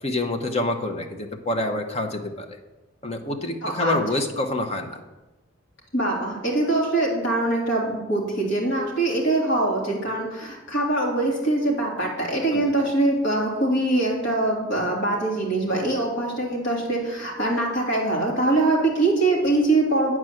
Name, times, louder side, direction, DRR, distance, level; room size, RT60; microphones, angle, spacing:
voice 1, 0.0-2.6 3.0-5.0 12.5-12.7, left 2 dB, 30° left, 5 dB, 0.9 m, -27 dB
voice 2, 3.6-4.0 5.9-20.2, right 2 dB, 60° left, -2 dB, 2.9 m, -23 dB
9.4 x 4.7 x 7.7 m, 1.1 s
head